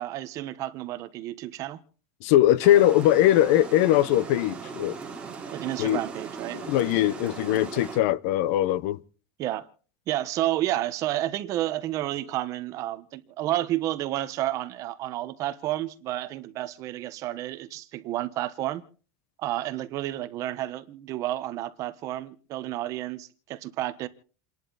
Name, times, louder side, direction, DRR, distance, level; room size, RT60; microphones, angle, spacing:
voice 1, 0.0-1.8 5.5-6.6 9.4-9.7 10.1-18.8 19.4-24.1, right 14 dB, 35° right, 1.2 m, -31 dB
voice 2, 2.2-5.0 5.8-6.0 6.5-9.0, left 13 dB, 55° left, 0.8 m, -21 dB
Water, 2.6-8.0, right 5 dB, 10° right, 3.3 m, -38 dB
29.0 x 11.0 x 4.0 m
supercardioid pair, 170°, 9 cm